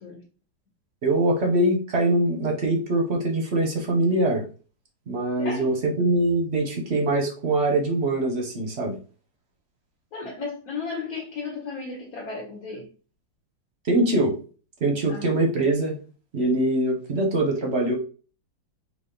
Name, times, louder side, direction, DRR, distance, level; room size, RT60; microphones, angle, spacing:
voice 1, 1.0-4.4 5.1-9.0 13.8-14.3 14.8-16.0 16.3-17.9, right 1 dB, 40° right, 2 dB, 1.0 m, -23 dB
voice 2, 5.4-5.7 10.1-12.9 15.1-15.3, left 4 dB, 50° left, -3 dB, 1.5 m, -34 dB
5.0 x 2.6 x 3.8 m, 0.37 s
omnidirectional pair, 2.1 m